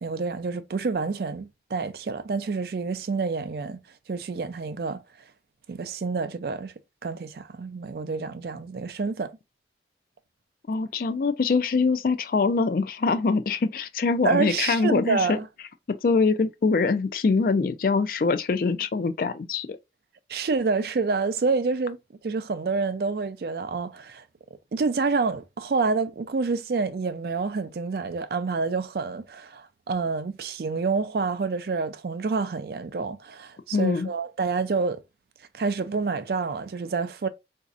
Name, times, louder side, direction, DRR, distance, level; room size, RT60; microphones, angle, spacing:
voice 1, 0.0-3.8 4.1-5.0 5.7-6.7 7.0-9.4 14.2-15.4 20.3-22.0 22.2-24.2 24.7-35.0 35.5-37.3, right 4 dB, 60° right, 0.4 m, -28 dB
voice 2, 10.7-15.4 16.0-19.8 33.7-34.1, left 4 dB, 50° left, 0.4 m, -24 dB
4.0 x 2.7 x 2.4 m
head